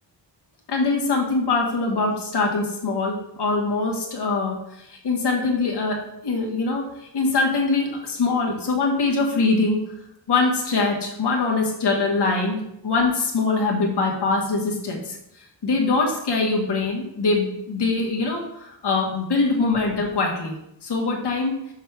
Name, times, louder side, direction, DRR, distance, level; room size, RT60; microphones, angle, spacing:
voice 1, 0.7-9.8 10.3-15.2 15.6-20.5 20.8-21.5, left 3 dB, 70° left, 0 dB, 1.6 m, -23 dB
6.4 x 5.9 x 3.4 m, 0.83 s
wide cardioid pair, 125°, 42 cm